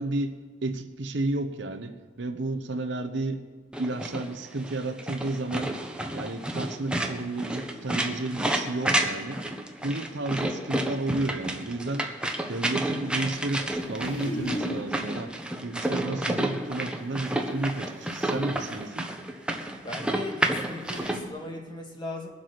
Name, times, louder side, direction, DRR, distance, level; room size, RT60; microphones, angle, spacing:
voice 1, 0.0-3.4 3.8-5.8 6.1-9.4 9.8-12.1 12.5-15.3 15.6-19.1, right 2 dB, 65° right, 6 dB, 0.9 m, -32 dB
sound 1, 3.7-21.2, right 1 dB, 5° right, 0.9 m, -30 dB
Silk dress flopping down into chair, 13.7-14.9 16.9-17.0 18.1-18.2 19.7-19.8 20.4-20.5 20.8-21.3, equal, 85° left, 2.8 m, -35 dB
voice 2, 19.8-22.3, left 2 dB, 25° left, 1 dB, 1.9 m, -38 dB
21.5 x 7.6 x 5.9 m, 1.4 s
head